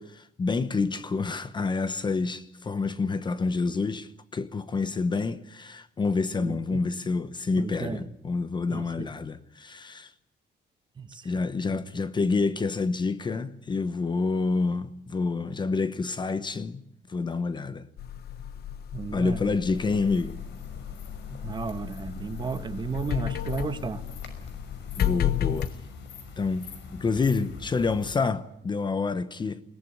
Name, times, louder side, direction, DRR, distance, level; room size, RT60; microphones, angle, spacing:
voice 1, 0.0-10.1 11.2-17.9 19.1-20.4 25.0-25.8 26.4-29.6, left 4 dB, 25° left, 0.9 m, -28 dB
voice 2, 6.4-6.8 7.6-8.0 8.7-9.1 11.0-11.3 11.7-11.8 18.9-19.5 21.4-24.0, right 5 dB, 25° right, 1.4 m, -34 dB
sound 1, 18.0-25.7, left 10 dB, 60° left, 1.1 m, -33 dB
sound 2, 19.7-28.2, left 4 dB, 85° left, 5.7 m, -44 dB
22.0 x 19.0 x 9.5 m
cardioid pair, 160°, 18 cm